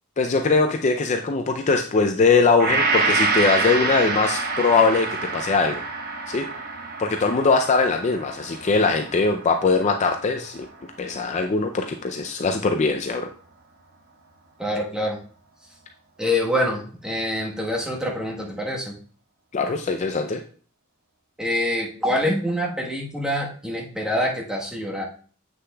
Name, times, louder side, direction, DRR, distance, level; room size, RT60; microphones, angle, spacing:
voice 1, 0.2-5.8 6.3-6.5 7.0-10.7 11.0-13.3 19.5-20.4, left 4 dB, 30° left, 5 dB, 0.4 m, -21 dB
Gong, 2.6-10.9 11.4-11.5, right 3 dB, 45° right, 1.1 m, -27 dB
voice 2, 14.6-15.2 16.2-18.9 21.4-25.0, left 1 dB, 5° right, -2 dB, 1.2 m, -25 dB
7.7 x 6.5 x 2.3 m, 0.43 s
head